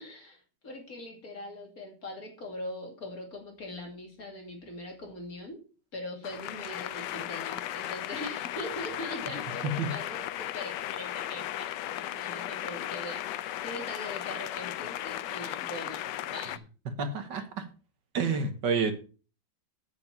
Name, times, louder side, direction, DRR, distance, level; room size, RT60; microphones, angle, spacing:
voice 1, 0.0-5.6 5.9-16.6, left 1 dB, 45° left, 2 dB, 3.1 m, -41 dB
sound 1, 6.2-16.6, left 13 dB, 70° left, 1.2 m, -36 dB
voice 2, 17.0-17.7 18.1-18.9, right 4 dB, 65° right, 8 dB, 1.8 m, -29 dB
8.3 x 6.9 x 5.8 m, 0.35 s
omnidirectional pair, 2.1 m